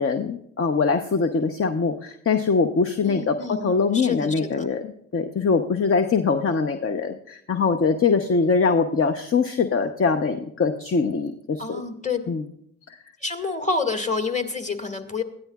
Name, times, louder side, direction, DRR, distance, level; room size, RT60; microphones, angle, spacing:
voice 1, 0.0-11.8 12.3-12.4 12.9-13.0, left 5 dB, 35° left, 7 dB, 0.9 m, -23 dB
voice 2, 3.0-4.7 11.6-12.2 13.2-15.2, left 4 dB, 20° left, 6 dB, 2.0 m, -28 dB
19.5 x 13.5 x 2.4 m, 0.71 s
hypercardioid pair, 50°, 39 cm